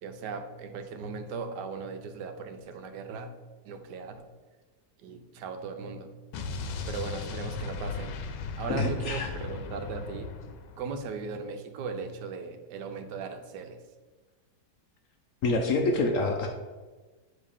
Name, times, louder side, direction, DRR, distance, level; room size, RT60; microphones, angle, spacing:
voice 1, 0.0-3.3 3.6-4.3 5.0-6.1 6.8-8.1 8.6-10.3 10.8-13.8, right 4 dB, 80° right, 7 dB, 1.3 m, -38 dB
Explosion, 6.3-11.1, left 5 dB, 90° left, 1.3 m, -37 dB
voice 2, 8.7-9.3 15.4-16.5, left 2 dB, 65° left, 3 dB, 0.9 m, -26 dB
7.4 x 3.4 x 5.0 m, 1.3 s
omnidirectional pair, 1.8 m